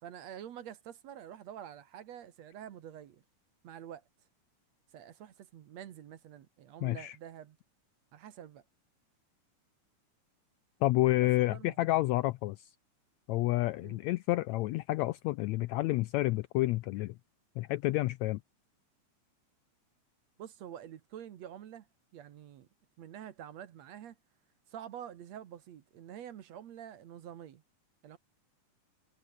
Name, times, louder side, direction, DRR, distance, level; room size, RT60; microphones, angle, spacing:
voice 1, 0.0-3.2 3.6-4.0 4.9-7.6 8.1-8.6 11.2-11.8 13.8-14.0 20.4-21.9 22.1-22.7 23.0-24.2 24.7-27.6 28.0-28.2, right 10 dB, 65° right, 2.3 m, -47 dB
voice 2, 6.8-7.2 10.8-12.7 13.3-17.1 17.6-18.4, left 18 dB, 80° left, 1.6 m, -29 dB
omnidirectional pair, 3.6 m